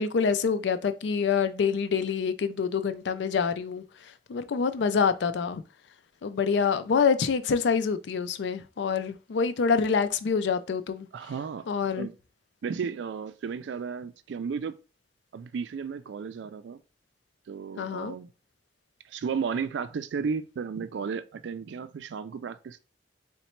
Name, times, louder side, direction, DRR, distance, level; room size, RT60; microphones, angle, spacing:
voice 1, 0.0-3.8 4.3-5.6 6.2-11.1 11.7-12.1 17.8-18.1, left 5 dB, 80° left, 0.4 m, -26 dB
voice 2, 11.1-11.7 12.0-12.2 12.6-14.7 15.3-16.8 17.5-18.3 19.1-22.8, right 6 dB, 85° right, 0.3 m, -33 dB
4.0 x 2.2 x 4.3 m
head